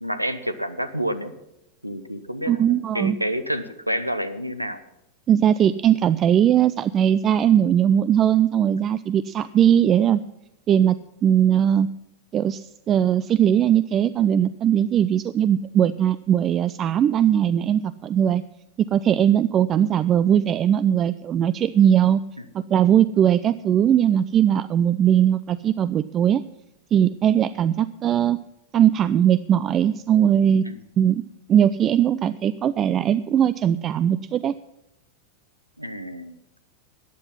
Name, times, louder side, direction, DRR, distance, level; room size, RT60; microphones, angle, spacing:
voice 1, 0.0-1.3 1.8-4.8 30.6-30.8 35.8-36.4, equal, 90° right, 12 dB, 0.9 m, -29 dB
voice 2, 2.5-3.2 5.3-10.2 10.7-11.0 11.2-11.9 12.3-18.4 18.9-22.2 22.5-26.4 26.9-28.4 28.7-30.6 31.0-31.2 31.5-34.5, right 9 dB, 30° right, 16 dB, 0.4 m, -19 dB
13.5 x 9.7 x 5.6 m, 0.87 s
figure-of-eight pair, 90°, 0 cm